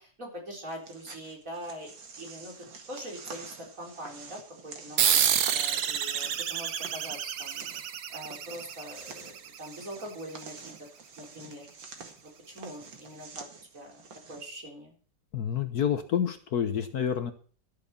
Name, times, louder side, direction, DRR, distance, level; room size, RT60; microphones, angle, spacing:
voice 1, 0.0-1.9 2.2-2.5 2.9-10.7 11.2-11.7 12.2-13.5 13.7-14.9, equal, 45° right, -1 dB, 4.7 m, -43 dB
sound 1, 0.7-14.5, right 4 dB, 90° right, 2.6 m, -48 dB
sound 2, 5.0-9.9, right 9 dB, 65° right, 1.4 m, -29 dB
voice 2, 15.3-17.3, left 8 dB, 60° left, 9 dB, 1.4 m, -28 dB
12.5 x 7.4 x 6.9 m, 0.43 s
omnidirectional pair, 2.0 m